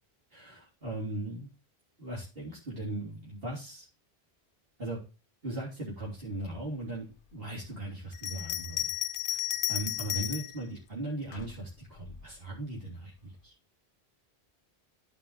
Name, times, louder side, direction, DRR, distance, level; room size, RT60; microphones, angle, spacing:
voice 1, 0.3-1.5 2.0-3.9 4.8-5.0 5.4-8.9 9.3-9.4 9.7-13.5, right 1 dB, 60° right, -5 dB, 3.4 m, -38 dB
Bell, 8.1-10.6 11.3-12.2, left 12 dB, 60° left, 0.7 m, -33 dB
13.5 x 5.7 x 3.1 m, 0.32 s
omnidirectional pair, 1.1 m